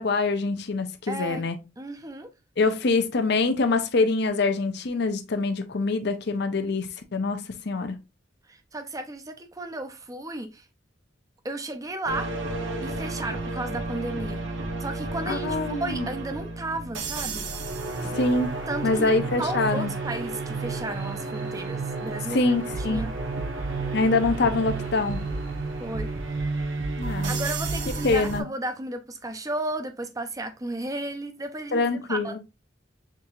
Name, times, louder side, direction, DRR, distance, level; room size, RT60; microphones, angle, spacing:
voice 1, 0.0-1.6 2.6-8.0 15.3-16.1 18.0-18.5 18.8-19.9 22.3-23.1 23.9-25.2 27.0-27.3 28.0-28.4 31.7-32.4, left 3 dB, 60° left, 0.6 m, -25 dB
voice 2, 1.1-1.4 1.8-2.3 8.5-10.7 11.4-12.3 12.8-14.5 14.8-17.5 18.7-19.1 19.4-22.5 22.9-23.1 25.8-26.1 27.3-31.8 32.1-32.4, right 2 dB, 20° right, 0.6 m, -34 dB
sound 1, 12.1-28.4, right 3 dB, 90° right, 0.9 m, -31 dB
6.0 x 2.8 x 2.3 m
head